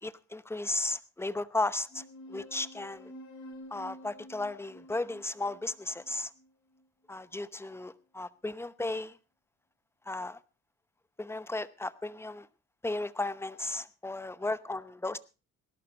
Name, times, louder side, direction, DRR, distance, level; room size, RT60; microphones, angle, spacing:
voice 1, 0.0-3.1 3.7-6.3 7.1-9.2 10.1-10.4 11.2-12.5 12.8-15.2, left 2 dB, 10° left, 0.8 m, -35 dB
sound 1, 1.9-6.8, equal, 70° left, 5.4 m, -50 dB
18.5 x 12.0 x 3.9 m
cardioid pair, 90°, 30 cm